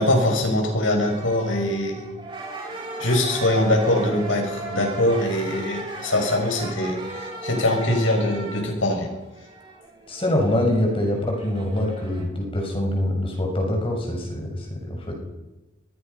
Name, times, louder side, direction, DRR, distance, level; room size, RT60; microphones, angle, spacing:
voice 1, 0.0-2.0 3.0-9.1, left 1 dB, 90° left, 3 dB, 6.9 m, -22 dB
sound 1, 1.0-12.2, right 2 dB, 25° right, 6.3 m, -37 dB
voice 2, 10.1-15.1, left 1 dB, 30° left, 1 dB, 6.1 m, -24 dB
25.5 x 23.0 x 5.8 m, 1.0 s
head